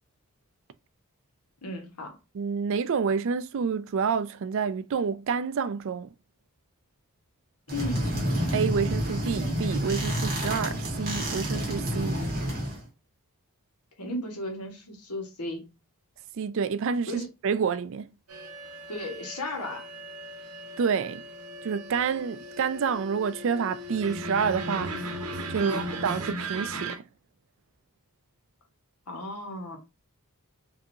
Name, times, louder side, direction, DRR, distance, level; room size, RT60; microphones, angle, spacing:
voice 1, 1.6-2.2 7.7-8.3 14.0-15.7 17.1-17.3 18.9-19.9 25.5-25.9 29.1-29.8, left 1 dB, 90° left, 1.4 m, -35 dB
voice 2, 2.3-6.1 8.5-12.2 16.4-18.1 20.8-21.2 21.6-24.9 25.5-27.0, right 6 dB, 60° right, 0.4 m, -28 dB
sound 1, 7.7-12.8, equal, 40° right, 1.8 m, -29 dB
sound 2, 18.3-27.0, right 1 dB, 75° right, 0.9 m, -37 dB
5.0 x 2.8 x 2.7 m
head